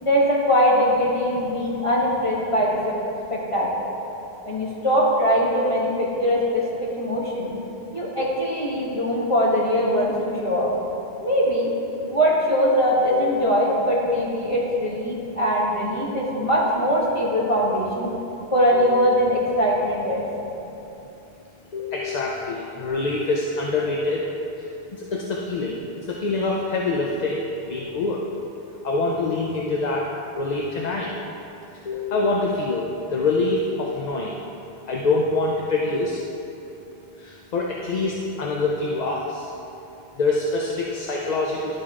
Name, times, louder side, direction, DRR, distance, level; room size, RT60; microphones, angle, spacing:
voice 1, 0.0-2.9 3.3-3.9 4.5-7.5 7.9-10.7 11.2-11.7 12.1-18.1 18.5-20.2, equal, 30° left, -5 dB, 1.4 m, -21 dB
voice 2, 18.7-19.3 21.7-24.3 24.6-24.7 25.0-25.8 26.1-28.2 28.8-30.1 30.4-31.1 31.9-32.8 33.1-34.4 34.9-36.2 37.2-39.4 40.2-41.8, left 3 dB, 50° left, -2 dB, 0.6 m, -25 dB
11.5 x 4.6 x 3.7 m, 2.9 s
omnidirectional pair, 1.1 m